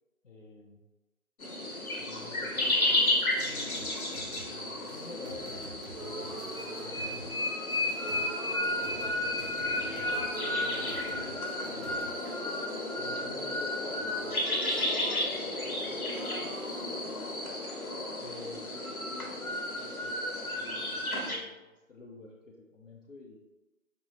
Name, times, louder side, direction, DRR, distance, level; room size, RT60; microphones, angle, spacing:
voice 1, 0.2-0.8 2.0-4.3 4.8-5.6 5.9-6.5 12.9-14.4 18.2-21.6 21.9-23.4, left 3 dB, 60° left, -1 dB, 0.5 m, -48 dB
sound 1, 1.4-21.4, left 1 dB, 85° left, 0.9 m, -32 dB
sound 2, 3.4-12.1, right 1 dB, 55° right, 0.5 m, -47 dB
sound 3, 5.9-7.6 8.0-9.8 10.0-11.6 12.0-15.7 16.0-18.0, right 2 dB, 75° right, 0.8 m, -45 dB
voice 2, 8.7-11.7 14.8-17.1, equal, 25° left, -7 dB, 0.9 m, -47 dB
5.1 x 2.1 x 2.9 m, 1.1 s
figure-of-eight pair, 150°, 43 cm